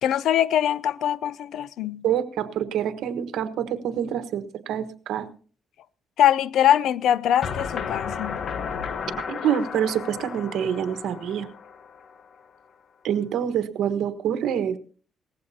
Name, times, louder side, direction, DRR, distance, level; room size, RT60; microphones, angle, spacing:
voice 1, 0.0-2.0 6.2-8.4, left 10 dB, 80° left, 0.5 m, -22 dB
voice 2, 2.0-5.3 9.3-11.5 13.0-14.8, right 9 dB, 80° right, 1.3 m, -26 dB
sound 1, 7.4-12.3, left 6 dB, 55° left, 1.1 m, -33 dB
19.0 x 15.0 x 2.8 m
cardioid pair, 105°, 0 cm